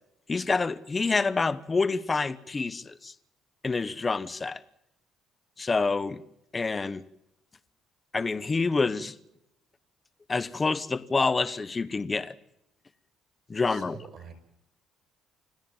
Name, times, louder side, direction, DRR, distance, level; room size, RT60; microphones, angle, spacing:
voice 1, 0.3-3.1 3.6-4.6 5.6-6.2 6.5-7.0 8.1-9.1 10.3-12.3 13.5-14.0, left 4 dB, 20° left, 0.9 m, -27 dB
voice 2, 13.7-14.3, right 7 dB, 50° right, 5.3 m, -45 dB
26.0 x 16.0 x 7.2 m
cardioid pair, 160°, 0 cm